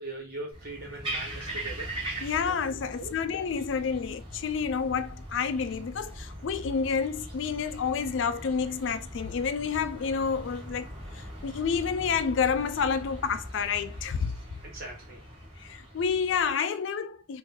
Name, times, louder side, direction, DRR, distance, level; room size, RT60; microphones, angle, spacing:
voice 1, 0.0-1.9 2.4-2.5 2.8-3.1 14.6-15.2, right 2 dB, 50° right, 1.2 m, -40 dB
sound 1, 0.5-16.5, right 1 dB, 25° right, 1.2 m, -41 dB
voice 2, 2.2-10.9 11.1-14.3 15.6-17.4, left 6 dB, 60° left, 0.4 m, -29 dB
2.8 x 2.6 x 3.7 m
head